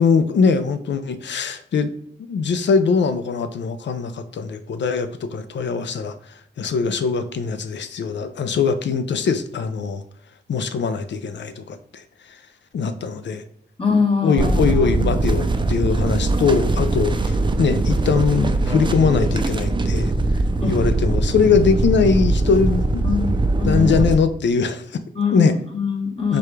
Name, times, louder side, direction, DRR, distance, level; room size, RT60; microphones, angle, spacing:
voice 1, 0.0-1.9 2.3-6.1 6.6-10.0 10.5-12.0 12.7-13.4 14.2-20.1 20.6-23.0 23.6-25.0 25.3-25.5 26.3-26.4, left 5 dB, 75° left, 10 dB, 0.5 m, -21 dB
voice 2, 13.8-14.9 20.6-20.8 23.0-24.0 25.1-26.4, left 5 dB, 30° left, 1 dB, 1.0 m, -23 dB
sound 1, 14.4-24.1, right 2 dB, 25° right, 0.4 m, -21 dB
4.8 x 2.3 x 4.6 m, 0.68 s
wide cardioid pair, 100°, 19 cm